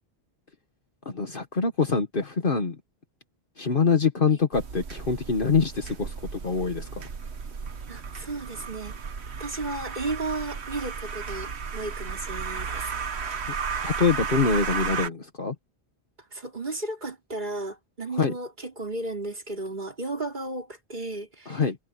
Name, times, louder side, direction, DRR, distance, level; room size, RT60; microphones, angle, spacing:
voice 1, 1.0-2.8 3.6-6.1 6.4-7.1 13.8-15.5 18.2-18.3 21.5-21.8, left 5 dB, 55° left, 1.6 m, -24 dB
sound 1, 4.5-15.1, right 6 dB, 90° right, 1.5 m, -34 dB
voice 2, 7.9-8.9 9.4-12.9 16.3-21.6, right 2 dB, 45° right, 4.8 m, -34 dB
omnidirectional pair, 1.1 m